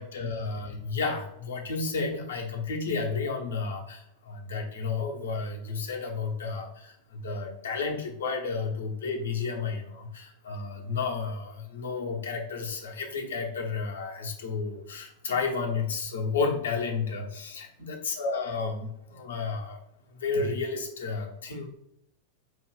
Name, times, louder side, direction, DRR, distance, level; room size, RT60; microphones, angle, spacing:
voice 1, 0.0-19.8 20.1-21.7, left 4 dB, 65° left, 2 dB, 0.9 m, -32 dB
4.7 x 2.3 x 3.6 m, 0.78 s
figure-of-eight pair, 90°, 0 cm